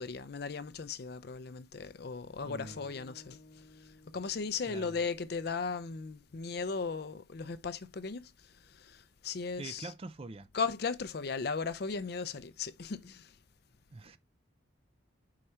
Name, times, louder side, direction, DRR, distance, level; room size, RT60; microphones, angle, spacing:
voice 1, 0.0-3.4 4.1-8.3 8.7-9.9 10.5-13.3, left 5 dB, 55° left, 0.5 m, -37 dB
sound 1, 2.4-6.7, left 2 dB, 30° left, 1.1 m, -58 dB
voice 2, 2.4-2.8 4.6-5.0 9.6-10.5 13.9-14.2, right 3 dB, 30° right, 0.4 m, -44 dB
4.8 x 4.4 x 5.5 m
head